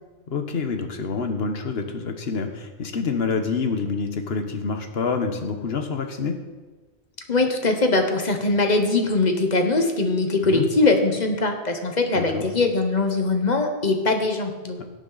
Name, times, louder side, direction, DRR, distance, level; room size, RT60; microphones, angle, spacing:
voice 1, 0.3-6.4 10.4-10.7 12.1-12.4 14.8-14.9, left 5 dB, 65° left, 6 dB, 1.3 m, -27 dB
voice 2, 7.3-14.8, left 3 dB, 40° left, 4 dB, 1.2 m, -21 dB
17.0 x 7.2 x 4.0 m, 1.3 s
omnidirectional pair, 1.1 m